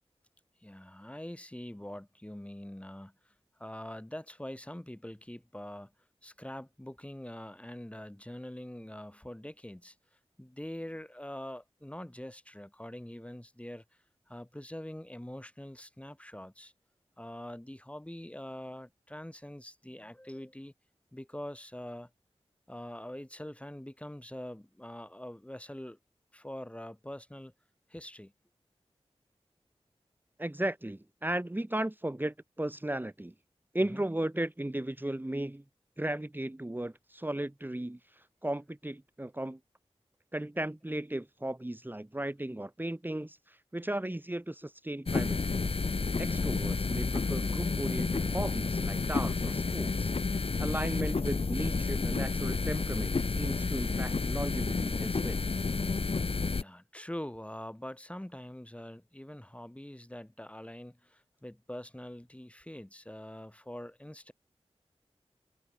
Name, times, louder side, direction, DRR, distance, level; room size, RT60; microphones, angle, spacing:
voice 1, 0.6-3.3 3.6-5.9 6.2-10.0 10.4-13.8 14.3-16.7 17.2-20.7 21.1-22.1 22.7-26.0 26.3-27.5 27.9-28.3 33.9-34.0 56.5-64.3, left 1 dB, 10° left, 4.1 m, -44 dB
voice 2, 30.4-33.3 33.7-35.6 36.0-39.6 40.3-45.6 46.2-55.4, right 1 dB, 20° right, 2.5 m, -36 dB
sound 1, 45.1-56.6, left 4 dB, 60° left, 1.3 m, -30 dB
wide cardioid pair, 65°, 11 cm